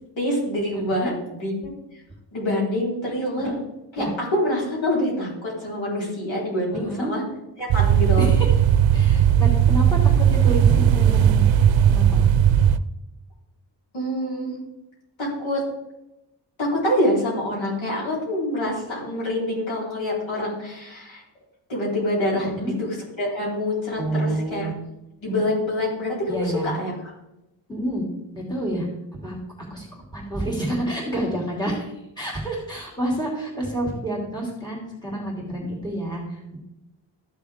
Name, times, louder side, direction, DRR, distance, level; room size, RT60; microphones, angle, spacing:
voice 1, 0.2-1.5 1.9-2.0 2.3-3.6 3.9-7.2 7.6-8.3 13.9-14.5 15.2-15.6 16.6-21.2 21.7-24.7 25.2-26.9, left 1 dB, 80° left, -5 dB, 4.3 m, -26 dB
voice 2, 0.7-1.1 3.4-3.5 4.0-4.1 6.7-7.1 8.2-8.5 8.9-11.4 11.9-12.2 22.3-22.8 24.0-24.7 26.3-26.7 27.7-28.0 28.3-28.9 29.2-29.4 29.7-36.6, right 1 dB, 10° left, -3 dB, 2.9 m, -29 dB
sound 1, 7.7-12.8, right 9 dB, 80° right, 0.6 m, -17 dB
14.0 x 6.7 x 3.6 m, 0.92 s
wide cardioid pair, 140°, 45 cm